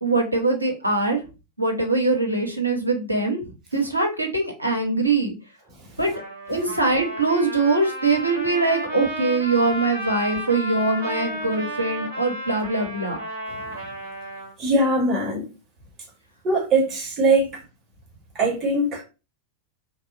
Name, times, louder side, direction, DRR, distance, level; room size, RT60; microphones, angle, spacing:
voice 1, 0.0-1.2 1.6-5.3 6.0-6.1 6.5-13.2, right 3 dB, 90° right, 0.6 m, -22 dB
Trumpet, 6.1-14.5, right 1 dB, 65° right, 0.9 m, -33 dB
voice 2, 14.6-15.5 16.4-17.5 18.3-19.0, right 2 dB, 25° right, 1.0 m, -21 dB
2.7 x 2.1 x 2.3 m
figure-of-eight pair, 90°, 0 cm